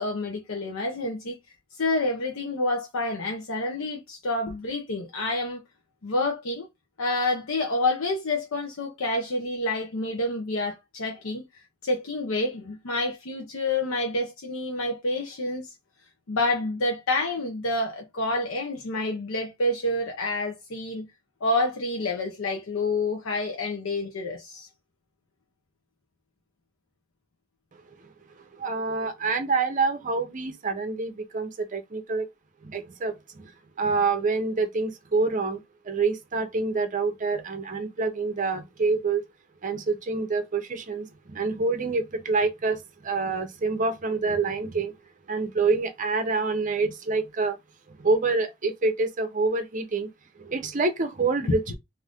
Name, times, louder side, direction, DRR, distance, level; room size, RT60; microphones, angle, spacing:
voice 1, 0.0-1.4 1.7-5.6 6.0-6.7 7.0-15.7 16.3-21.1 21.4-24.7, left 2 dB, 80° left, 0.6 m, -28 dB
voice 2, 28.6-32.3 32.6-33.5 33.8-39.2 39.6-44.9 45.3-47.6 47.9-50.1 50.4-51.8, right 3 dB, 40° right, 0.6 m, -27 dB
2.6 x 2.5 x 3.4 m
head